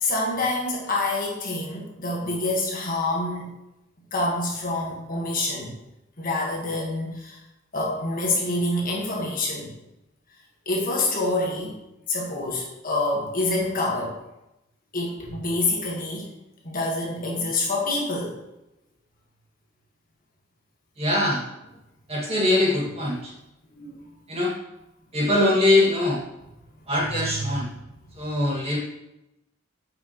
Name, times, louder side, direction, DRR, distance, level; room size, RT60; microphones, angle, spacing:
voice 1, 0.0-3.5 4.1-5.7 6.2-7.4 7.7-9.7 10.6-11.8 12.1-14.2 14.9-16.3 16.6-18.4 23.7-24.0 27.1-27.4, left 2 dB, 45° left, -2 dB, 1.5 m, -27 dB
voice 2, 21.0-21.4 22.1-23.3 24.3-24.5 25.1-26.2 26.9-27.7 28.2-28.8, left 1 dB, 30° right, -4 dB, 1.9 m, -22 dB
7.6 x 5.8 x 3.0 m, 0.93 s
head